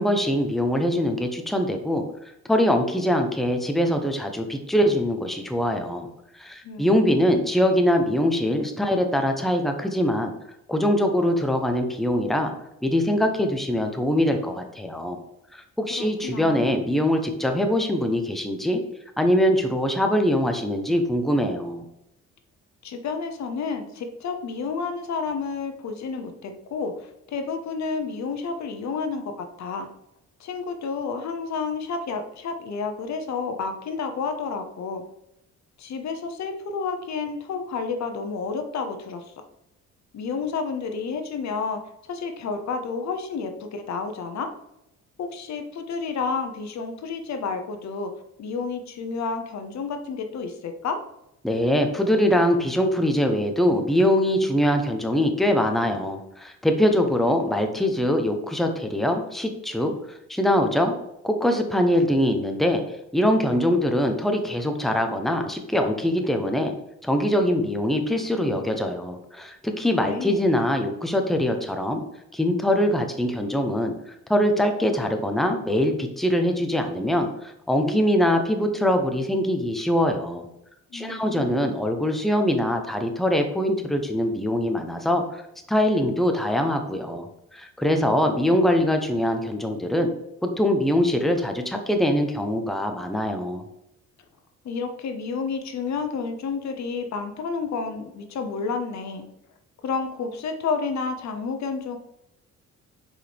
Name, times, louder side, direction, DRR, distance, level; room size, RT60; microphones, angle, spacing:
voice 1, 0.0-2.0 2.5-6.1 6.3-10.3 10.7-12.5 12.8-15.2 15.8-18.8 19.2-21.8 51.4-59.9 60.3-60.9 61.2-62.8 63.1-66.7 67.0-72.0 72.3-73.9 74.3-80.4 80.9-85.4 85.7-87.3 87.5-90.1 90.4-93.6, equal, ahead, 4 dB, 1.0 m, -23 dB
voice 2, 6.6-7.2 15.9-16.7 22.8-29.9 30.4-35.0 35.8-39.3 40.1-41.8 42.1-44.5 45.2-48.1 48.4-51.0 70.0-70.5 80.9-81.7 94.6-99.3 99.8-102.0, left 5 dB, 65° left, 6 dB, 1.0 m, -30 dB
6.5 x 5.0 x 3.5 m, 0.82 s
cardioid pair, 90°, 30 cm